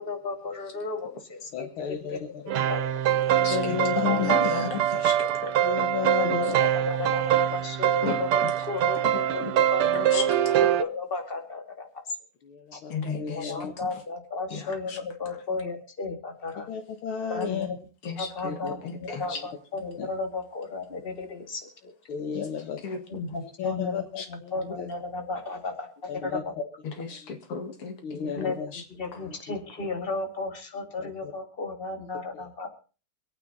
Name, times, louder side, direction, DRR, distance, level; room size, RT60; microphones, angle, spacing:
voice 1, 0.0-2.8 4.0-4.6 4.9-5.5 6.2-11.9 12.7-12.8 13.3-16.7 17.3-17.8 18.2-21.9 23.1-26.5 28.3-32.7, left 3 dB, 25° left, 4 dB, 2.4 m, -34 dB
voice 2, 1.5-2.4 3.3-4.3 5.6-6.6 12.4-13.7 14.9-15.1 15.5-15.6 16.6-17.7 18.4-18.7 19.2-19.4 20.0-20.1 22.1-22.9 23.4-24.9 26.1-26.4 27.1-27.4 28.0-28.7 29.2-29.6 31.0-31.3 32.3-32.5, left 8 dB, 70° left, 6 dB, 2.0 m, -34 dB
sound 1, 2.5-10.8, right 11 dB, 80° right, 1.8 m, -24 dB
voice 3, 3.4-5.1 8.0-8.5 9.4-9.5 9.8-10.2 12.9-13.9 14.5-15.0 18.0-19.4 22.3-22.4 22.8-23.0 24.2-24.3 27.0-28.4 28.7-28.8, left 7 dB, 90° left, 6 dB, 2.9 m, -34 dB
25.0 x 9.2 x 4.1 m, 0.36 s
omnidirectional pair, 2.4 m